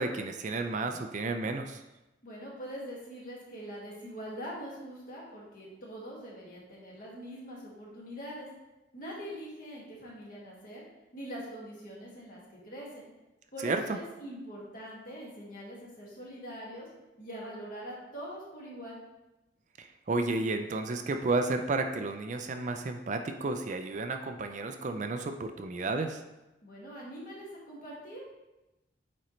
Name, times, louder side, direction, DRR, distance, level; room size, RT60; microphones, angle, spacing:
voice 1, 0.0-1.8 13.6-14.0 19.8-26.2, right 3 dB, 40° right, 6 dB, 0.4 m, -32 dB
voice 2, 2.2-8.5 8.9-10.8 11.1-13.0 13.5-16.9 17.2-19.0 26.6-28.2, equal, 50° left, -5 dB, 2.0 m, -43 dB
8.8 x 4.2 x 3.1 m, 1.0 s
head